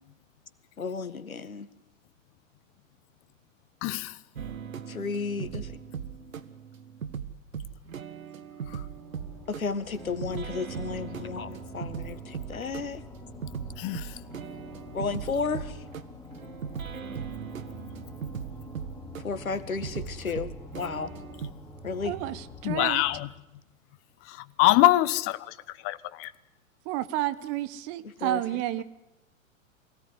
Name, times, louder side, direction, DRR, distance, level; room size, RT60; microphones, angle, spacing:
voice 1, 0.8-1.7 4.9-5.8 9.5-13.0 14.9-15.8 19.2-21.1 21.8-22.1 28.2-28.4 28.8-28.9, left 5 dB, 85° left, 1.8 m, -33 dB
voice 2, 3.8-4.2 8.7-8.8 13.8-14.2 22.6-23.3 24.2-26.3, left 16 dB, 35° left, 1.1 m, -25 dB
sound 1, 4.4-21.5, right 7 dB, 75° right, 1.7 m, -39 dB
sound 2, 8.9-23.2, left 1 dB, 10° left, 3.2 m, -46 dB
voice 3, 22.0-23.1 26.8-28.8, right 14 dB, 35° right, 1.3 m, -31 dB
24.0 x 17.0 x 9.7 m
hypercardioid pair, 110°, 41 cm